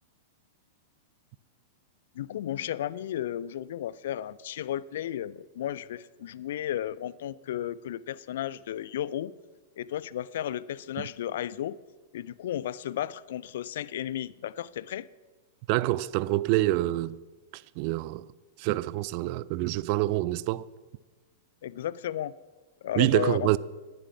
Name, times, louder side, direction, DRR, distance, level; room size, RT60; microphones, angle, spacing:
voice 1, 2.2-9.3 9.8-11.8 12.1-15.1 21.6-22.3 22.8-23.6, left 11 dB, 60° left, 0.4 m, -33 dB
voice 2, 15.7-17.2 17.8-18.2 18.6-20.6 23.0-23.6, right 17 dB, 45° right, 0.4 m, -26 dB
10.5 x 10.5 x 6.0 m
figure-of-eight pair, 95°, 0 cm